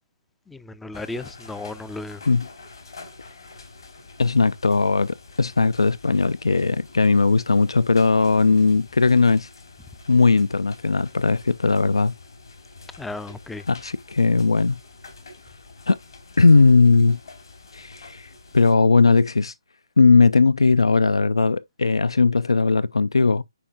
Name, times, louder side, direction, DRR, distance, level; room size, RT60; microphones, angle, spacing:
voice 1, 0.5-2.2 13.0-13.6, left 2 dB, 5° left, 0.3 m, -34 dB
sound 1, 0.9-18.7, left 3 dB, 70° left, 3.7 m, -46 dB
voice 2, 4.2-9.5 10.1-12.1 13.7-14.8 15.9-16.0 16.4-17.2 17.7-19.5 20.0-23.4, left 4 dB, 85° left, 0.3 m, -18 dB
9.9 x 4.4 x 2.4 m
figure-of-eight pair, 150°, 3 cm